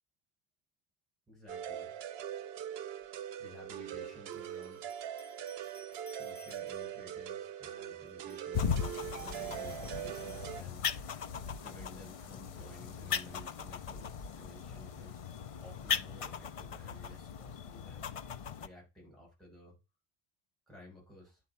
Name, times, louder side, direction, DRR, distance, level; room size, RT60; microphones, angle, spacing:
voice 1, 1.3-1.9 3.4-4.9 6.1-11.0 11.6-15.2 15.6-18.2 18.5-19.8 20.7-21.4, left 1 dB, ahead, -4 dB, 6.2 m, -54 dB
sound 1, 1.5-10.6, right 10 dB, 70° right, 0.8 m, -42 dB
sound 2, 3.0-3.1 4.3-7.1 8.1-11.1, left 2 dB, 15° left, 1.2 m, -59 dB
sound 3, 8.5-18.7, left 7 dB, 55° left, 0.3 m, -38 dB
9.6 x 4.0 x 5.5 m, 0.27 s
omnidirectional pair, 1.1 m